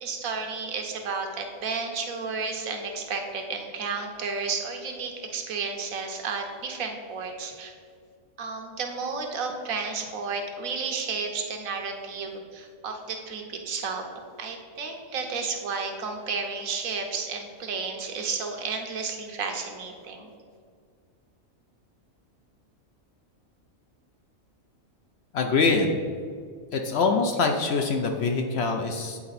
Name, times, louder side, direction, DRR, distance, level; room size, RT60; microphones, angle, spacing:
voice 1, 0.0-7.7 8.4-14.1 14.4-20.3, right 4 dB, 80° right, 3 dB, 1.3 m, -32 dB
voice 2, 25.3-26.0 26.7-29.2, left 4 dB, 65° left, 4 dB, 0.7 m, -24 dB
8.5 x 4.4 x 4.0 m, 2.1 s
omnidirectional pair, 1.4 m